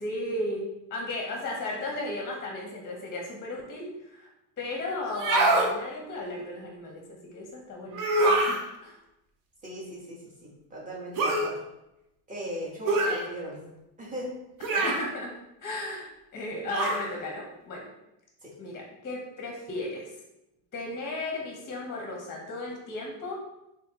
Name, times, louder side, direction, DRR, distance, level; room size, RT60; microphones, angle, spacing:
voice 1, 0.0-4.3 4.6-7.0 7.3-9.0 14.8-17.9 18.6-20.1 20.7-23.3, left 2 dB, 20° left, -1 dB, 0.8 m, -35 dB
sound 1, 5.1-5.7 7.9-8.6 11.2-11.5 12.9-13.2 14.6-15.1 16.7-17.1, right 2 dB, 45° right, 0.8 m, -24 dB
voice 2, 9.6-10.3 10.7-11.6 12.3-13.7 14.0-14.3 18.4-18.5, equal, 15° right, -3 dB, 1.1 m, -37 dB
4.2 x 3.6 x 2.9 m, 0.89 s
cardioid pair, 140°, 46 cm